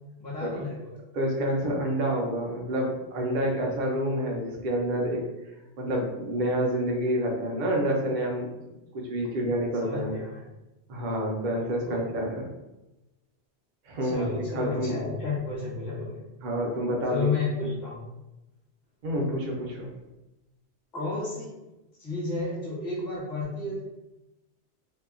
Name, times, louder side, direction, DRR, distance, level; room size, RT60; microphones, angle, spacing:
voice 1, 0.2-0.8 9.8-10.5 11.6-12.0 14.0-16.2 17.1-18.0 20.9-21.5 22.0-23.8, left 3 dB, 40° left, -7 dB, 1.1 m, -32 dB
voice 2, 1.1-5.2 5.8-8.5 8.9-10.2 10.9-12.5 13.9-15.0 16.4-17.3 19.0-19.9, equal, 55° right, -1 dB, 0.6 m, -28 dB
2.7 x 2.2 x 2.4 m, 0.99 s
omnidirectional pair, 1.2 m